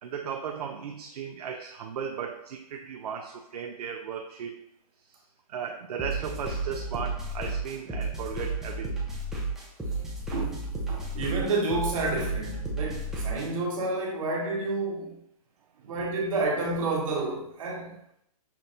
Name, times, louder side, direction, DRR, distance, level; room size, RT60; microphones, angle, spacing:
voice 1, 0.0-4.6 5.0-5.2 5.5-9.0 15.8-15.9, right 7 dB, 75° right, 4 dB, 0.4 m, -36 dB
sound 1, 6.0-13.5, right 2 dB, ahead, 0.4 m, -32 dB
voice 2, 10.3-15.2 15.8-18.0, right 2 dB, 60° right, -1 dB, 1.2 m, -30 dB
5.8 x 2.2 x 2.6 m, 0.75 s
hypercardioid pair, 145°, 20 cm